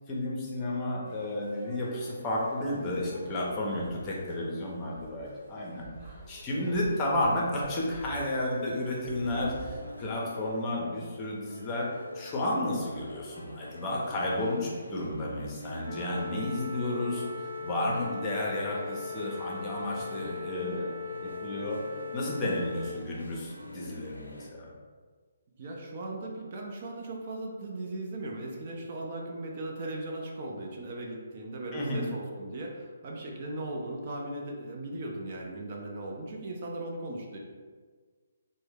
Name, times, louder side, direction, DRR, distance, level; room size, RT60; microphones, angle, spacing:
voice 1, 0.1-5.9 6.3-11.9 12.1-17.2 17.6-20.9 21.2-21.8 22.1-24.7 31.7-32.0, left 1 dB, 20° left, -3 dB, 0.6 m, -32 dB
sound 1, 1.0-9.7, right 2 dB, 20° right, 0.9 m, -50 dB
sound 2, 8.0-24.5, left 1 dB, 85° left, 0.5 m, -46 dB
sound 3, 15.8-22.9, left 4 dB, 90° right, 0.7 m, -39 dB
voice 2, 25.6-37.4, right 1 dB, 40° right, -1 dB, 0.4 m, -38 dB
2.6 x 2.1 x 3.5 m, 1.5 s
figure-of-eight pair, 135°, 0 cm